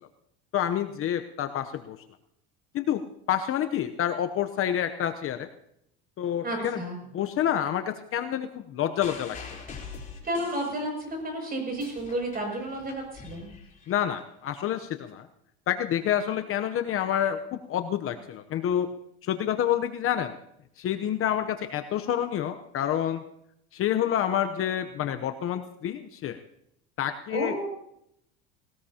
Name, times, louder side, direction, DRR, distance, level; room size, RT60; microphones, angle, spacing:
voice 1, 0.5-2.0 2.7-3.0 3.3-5.5 6.2-6.8 7.1-9.6 13.9-15.3 15.7-18.9 19.2-20.3 20.8-23.2 23.7-26.4 27.0-27.5, left 10 dB, 40° left, 8 dB, 0.9 m, -28 dB
voice 2, 6.4-7.0 10.2-13.5 27.3-27.7, right 1 dB, 30° right, 2 dB, 7.1 m, -31 dB
sound 1, 9.0-11.2 11.6-14.2 15.1-15.2, left 5 dB, 25° left, 4.0 m, -44 dB
20.0 x 18.5 x 2.9 m, 0.76 s
supercardioid pair, 110°, 32 cm